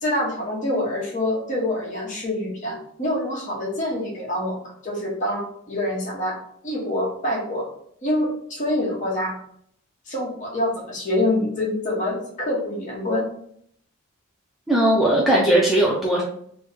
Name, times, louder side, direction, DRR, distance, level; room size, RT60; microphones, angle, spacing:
voice 1, 0.0-6.4 6.6-7.7 8.0-9.4 10.1-13.3, left 1 dB, 35° left, -5 dB, 0.9 m, -26 dB
voice 2, 14.7-16.2, right 1 dB, ahead, -5 dB, 0.4 m, -18 dB
3.0 x 2.0 x 3.5 m, 0.66 s
head